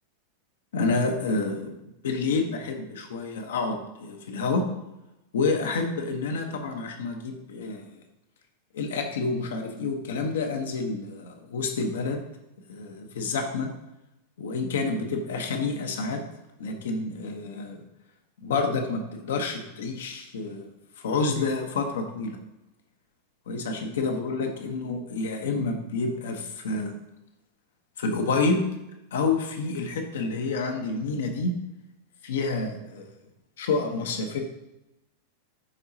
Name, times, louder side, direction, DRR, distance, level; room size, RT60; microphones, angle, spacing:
voice 1, 0.7-1.7 2.0-4.7 5.3-7.9 8.7-12.2 12.7-13.7 14.4-16.2 16.6-17.8 18.4-20.7 21.0-22.4 23.5-26.9 28.0-28.6 29.1-31.6 32.2-33.1 33.6-34.4, left 3 dB, 60° left, 4 dB, 1.1 m, -28 dB
11.5 x 4.7 x 2.8 m, 0.92 s
figure-of-eight pair, 90°, 0 cm